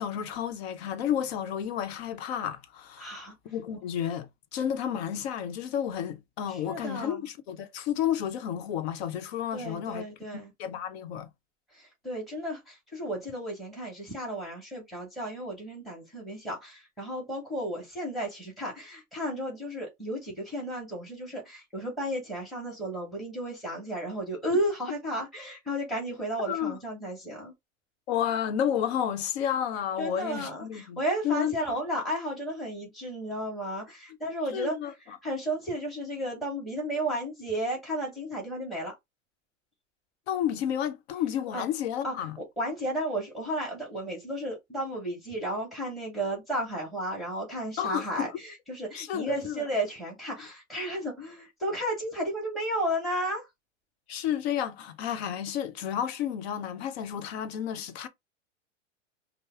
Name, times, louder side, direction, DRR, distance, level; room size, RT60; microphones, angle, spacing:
voice 1, 0.0-10.0 10.6-11.3 26.5-26.8 28.1-31.6 34.5-34.9 40.3-42.4 47.8-48.3 48.9-49.6 54.1-58.1, left 9 dB, 55° left, 0.9 m, -31 dB
voice 2, 3.0-3.3 3.7-3.8 6.5-7.2 9.5-10.5 11.7-27.5 30.0-38.9 41.5-41.6 42.0-53.5, right 1 dB, ahead, 1.8 m, -33 dB
5.3 x 2.0 x 3.6 m
hypercardioid pair, 110°, 38 cm